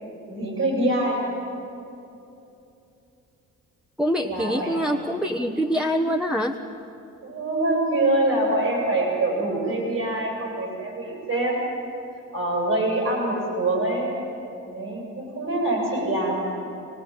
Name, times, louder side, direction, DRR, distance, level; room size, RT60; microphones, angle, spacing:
voice 1, 0.3-1.2 4.2-5.1 7.2-11.6 12.3-14.1 14.7-16.4, right 1 dB, 55° right, -2 dB, 7.4 m, -25 dB
voice 2, 4.0-6.6, equal, 5° right, 0 dB, 1.3 m, -24 dB
28.0 x 19.0 x 9.0 m, 2.8 s
cardioid pair, 90°, 30 cm